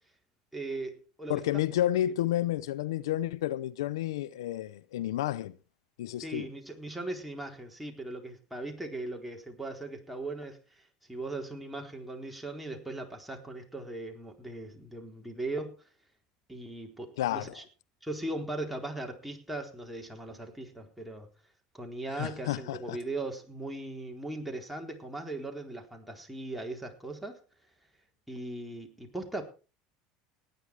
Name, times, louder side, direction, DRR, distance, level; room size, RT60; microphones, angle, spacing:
voice 1, 0.5-1.4 6.2-15.7 16.5-17.6 18.0-21.3 21.7-27.4 28.3-29.4, right 2 dB, 5° right, 4.1 m, -39 dB
voice 2, 1.3-5.6 6.0-6.5 17.2-17.5 22.2-23.0, left 13 dB, 85° left, 0.6 m, -31 dB
18.5 x 9.9 x 4.8 m
supercardioid pair, 95°, 2 cm